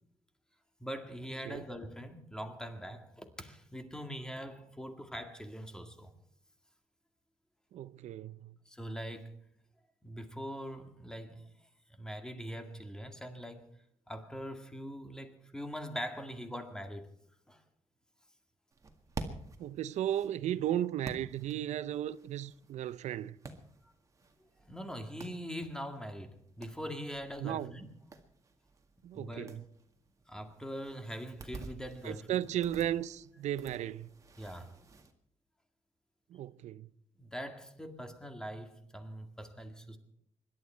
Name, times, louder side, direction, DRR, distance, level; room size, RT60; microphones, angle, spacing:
voice 1, 0.8-6.1 8.7-9.4 10.0-11.5 11.9-13.7 14.1-17.1 17.5-17.6 24.4-27.9 29.1-29.6 30.3-32.5 34.4-34.7 37.2-40.0, equal, 5° left, 2.0 m, -42 dB
voice 2, 7.7-8.6 19.6-23.4 27.4-27.7 29.0-29.6 32.0-34.1 36.3-36.9, right 11 dB, 80° right, 0.6 m, -35 dB
sound 1, 18.7-35.1, right 3 dB, 30° right, 1.9 m, -50 dB
25.5 x 12.0 x 4.5 m
cardioid pair, 150°, 12 cm